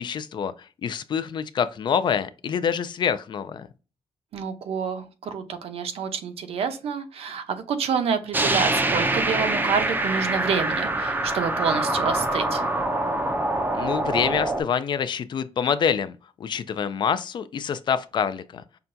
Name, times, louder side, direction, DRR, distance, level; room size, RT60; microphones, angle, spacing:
voice 1, 0.0-3.7 13.7-16.1 16.4-18.6, left 7 dB, 50° left, 0.3 m, -26 dB
voice 2, 4.3-12.6, right 6 dB, 75° right, 0.6 m, -28 dB
sound 1, 8.3-14.6, right 2 dB, 20° right, 0.4 m, -25 dB
5.7 x 2.2 x 2.6 m
wide cardioid pair, 150°, 10 cm